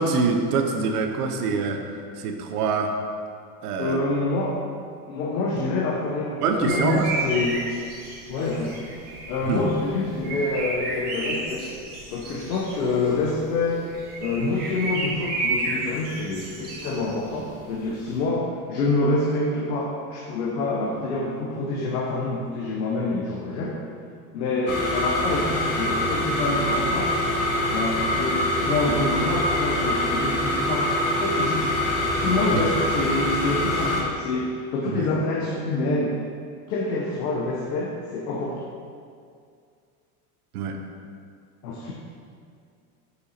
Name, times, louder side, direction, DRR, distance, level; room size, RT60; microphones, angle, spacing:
voice 1, 0.0-1.8 2.2-2.9 3.6-4.0 6.4-7.3 9.5-9.6 32.5-32.6 34.9-35.1 40.5-40.8, right 4 dB, 75° right, 4 dB, 0.9 m, -25 dB
voice 2, 3.8-4.6 5.1-7.6 8.3-8.9 9.3-11.6 12.1-13.8 14.2-23.8 24.3-27.1 27.7-30.9 31.2-36.2 36.7-38.6 41.6-41.9, left 2 dB, 80° left, -2 dB, 1.1 m, -26 dB
sound 1, 6.5-18.2, right 2 dB, 20° right, 0.7 m, -32 dB
sound 2, 24.7-34.0, left 1 dB, 35° left, 1.1 m, -24 dB
6.3 x 5.7 x 4.2 m, 2.2 s
supercardioid pair, 175°, 46 cm